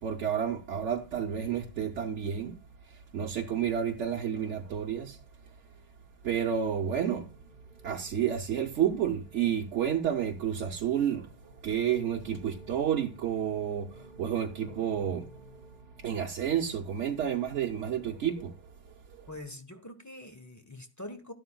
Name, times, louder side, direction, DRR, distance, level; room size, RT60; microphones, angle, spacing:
voice 1, 0.0-5.7 6.2-7.3 7.8-15.3 16.0-19.3, right 9 dB, 75° right, 1.1 m, -31 dB
sound 1, 6.1-16.8, right 1 dB, 45° left, 3.1 m, -55 dB
voice 2, 19.3-21.3, left 1 dB, 15° left, 1.0 m, -44 dB
12.0 x 11.5 x 2.3 m
omnidirectional pair, 1.2 m